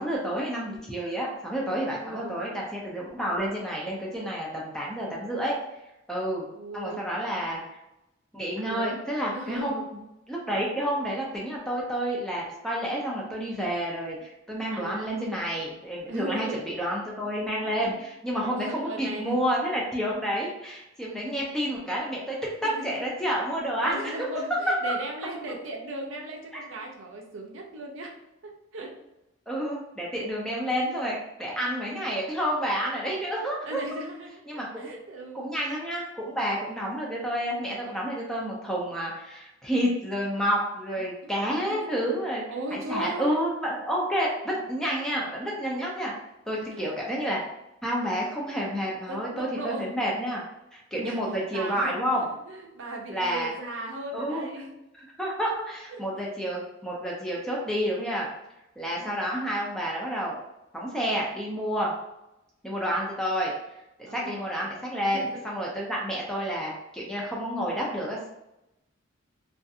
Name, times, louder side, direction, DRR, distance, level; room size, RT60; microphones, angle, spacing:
voice 1, 0.0-5.6 6.1-6.4 6.7-7.8 8.3-10.0 10.3-24.3 24.8-24.9 29.5-33.8 34.5-34.9 35.3-42.4 42.7-46.1 46.5-47.4 47.8-50.4 50.7-52.2 53.1-53.5 54.1-54.5 55.2-58.3 58.8-60.4 60.7-61.9 62.6-63.5 64.1-68.3, equal, 5° left, -4 dB, 0.4 m, -29 dB
voice 2, 1.9-2.4 6.5-7.0 8.6-9.0 9.3-9.9 14.7-15.2 16.1-16.6 17.6-17.7 18.4-19.4 22.6-23.1 23.8-28.2 28.4-28.9 33.6-35.5 36.7-36.8 41.2-41.3 41.7-42.0 42.5-43.5 46.5-46.9 49.1-49.9 50.9-51.2 51.5-54.7 55.9-56.0 58.9-59.2 64.1-64.6 65.1-65.5, right 2 dB, 65° right, 1 dB, 0.5 m, -37 dB
2.4 x 2.4 x 2.6 m, 0.90 s
head